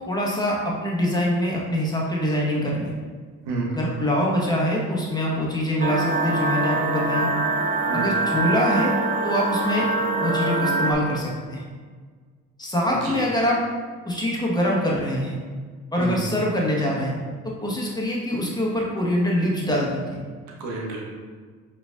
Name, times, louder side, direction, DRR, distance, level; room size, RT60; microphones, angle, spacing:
voice 1, 0.1-2.9 3.7-7.3 7.9-9.0 9.2-9.9 10.2-11.6 12.6-13.6 14.0-15.4 15.9-17.1 17.4-20.2, equal, 10° left, -3 dB, 1.2 m, -24 dB
sound 1, 5.8-10.9, right 2 dB, 20° right, 0.6 m, -24 dB
voice 2, 12.9-13.2 16.0-16.3 20.6-21.0, right 3 dB, 80° right, -2 dB, 1.0 m, -30 dB
4.9 x 3.3 x 2.5 m, 1.6 s
hypercardioid pair, 55°, 36 cm